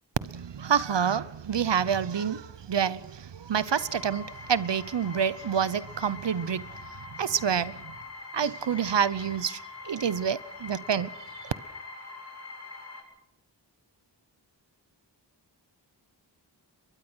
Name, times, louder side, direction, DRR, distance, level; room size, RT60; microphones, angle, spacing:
voice 1, 0.2-6.7 7.1-7.9 8.3-9.6 9.8-11.1 11.4-11.5, right 7 dB, 75° right, 0.9 m, -28 dB
sound 1, 3.7-13.0, left 3 dB, 35° left, 7.2 m, -44 dB
23.0 x 22.0 x 6.3 m
wide cardioid pair, 60°, 43 cm